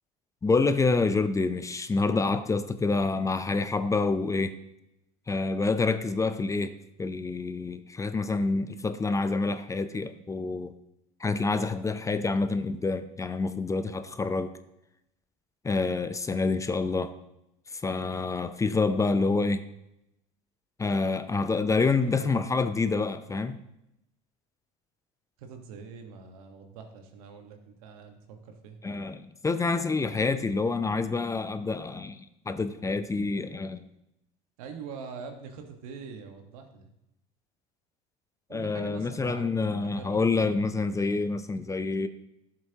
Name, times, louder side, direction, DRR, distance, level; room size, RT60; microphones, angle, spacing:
voice 1, 0.4-4.6 5.3-10.7 11.2-14.5 15.6-17.1 17.8-19.6 20.8-23.6 28.8-33.9 38.5-42.1, left 3 dB, 15° left, 0.6 m, -27 dB
voice 2, 22.0-22.5 25.4-28.8 34.6-36.9 38.5-40.3, right 5 dB, 85° right, 1.4 m, -44 dB
12.0 x 7.5 x 2.9 m
supercardioid pair, 95°, 18 cm